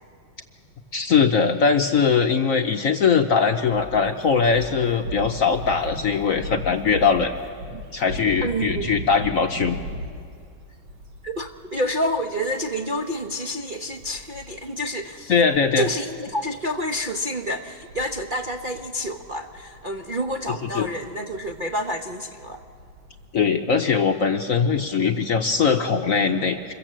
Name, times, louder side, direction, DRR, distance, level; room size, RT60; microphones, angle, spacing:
voice 1, 0.9-7.3 7.9-9.8 15.3-15.9 20.6-20.9 23.3-26.7, left 5 dB, 55° left, 6 dB, 1.0 m, -21 dB
sound 1, 3.7-14.7 15.0-15.2 15.5-23.3, equal, 90° right, 2.5 m, -37 dB
voice 2, 8.4-8.9 11.2-15.3 15.8-22.6, equal, 40° right, 1 dB, 0.8 m, -28 dB
26.5 x 22.5 x 7.5 m, 2.2 s
omnidirectional pair, 2.1 m